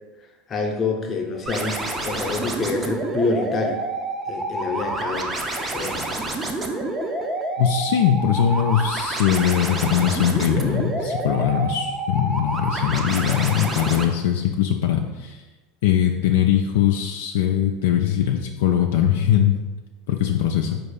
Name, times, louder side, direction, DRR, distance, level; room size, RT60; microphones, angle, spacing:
voice 1, 0.5-3.8 4.3-5.4 5.7-6.3, left 3 dB, 35° left, 2 dB, 0.7 m, -27 dB
sound 1, 1.5-14.0, right 2 dB, 20° right, 0.6 m, -28 dB
voice 2, 7.6-15.4 15.8-19.6 20.1-20.8, left 9 dB, 70° left, 3 dB, 0.3 m, -21 dB
4.2 x 2.5 x 4.8 m, 1.2 s
hypercardioid pair, 85°, 0 cm